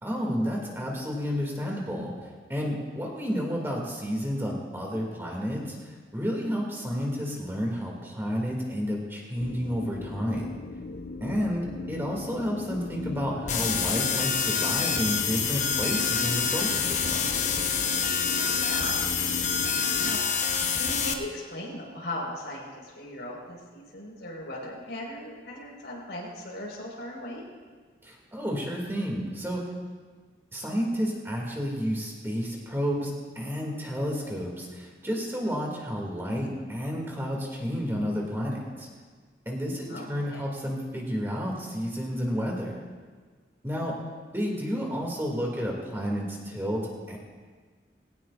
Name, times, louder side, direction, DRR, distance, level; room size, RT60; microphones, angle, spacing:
voice 1, 0.0-10.5 11.2-17.3 28.0-29.6 30.5-38.9 39.5-42.8 43.6-44.0 44.3-46.8 47.1-47.2, equal, 15° right, -2 dB, 2.4 m, -31 dB
sound 1, 9.4-20.2, left 3 dB, 60° left, 0.5 m, -38 dB
sound 2, 13.5-21.1, left 6 dB, 40° left, 0.9 m, -27 dB
voice 2, 18.5-19.0 20.0-20.2 20.6-27.4 39.9-40.1 40.3-40.4, left 1 dB, 80° left, -2 dB, 4.7 m, -38 dB
21.0 x 17.5 x 2.5 m, 1.5 s
head